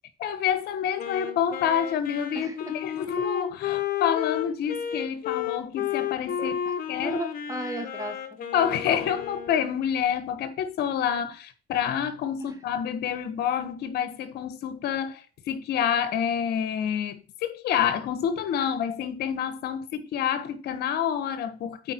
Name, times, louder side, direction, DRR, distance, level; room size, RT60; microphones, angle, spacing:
voice 1, 0.2-6.5 6.9-7.2 8.5-21.9, left 8 dB, 70° left, 1.3 m, -28 dB
Wind instrument woodwind instrument, 1.0-9.6, left 9 dB, 55° left, 1.5 m, -32 dB
voice 2, 2.3-2.8 6.4-6.8 7.0-8.2 12.4-12.6, right 1 dB, 20° right, 2.2 m, -35 dB
9.0 x 4.5 x 4.5 m
cardioid pair, 110°, 17 cm